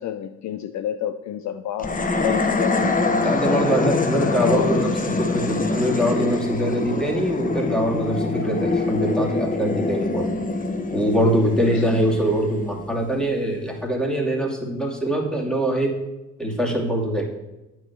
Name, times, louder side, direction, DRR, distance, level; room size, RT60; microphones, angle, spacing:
voice 1, 0.0-3.3 4.1-4.8 11.6-11.9, left 10 dB, 50° left, 0.5 m, -29 dB
sound 1, 1.8-13.2, left 3 dB, 20° left, 1.1 m, -25 dB
voice 2, 3.2-10.3 10.9-16.0 16.4-17.2, right 1 dB, ahead, 2.6 m, -23 dB
8.8 x 4.8 x 7.0 m
hypercardioid pair, 50°, 36 cm